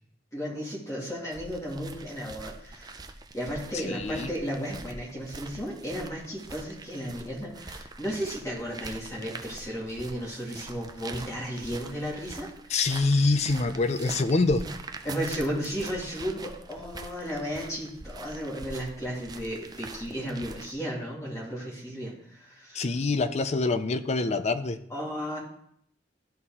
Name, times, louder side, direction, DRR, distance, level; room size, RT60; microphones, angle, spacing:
voice 1, 0.3-3.1 3.3-12.8 15.0-23.1 24.9-25.4, equal, 15° left, -3 dB, 2.2 m, -34 dB
sound 1, 1.3-20.7, right 3 dB, 20° right, 0.5 m, -44 dB
voice 2, 3.8-4.3 12.7-14.7 22.7-24.8, left 3 dB, 35° left, 11 dB, 0.4 m, -25 dB
12.5 x 4.2 x 3.6 m, 0.69 s
head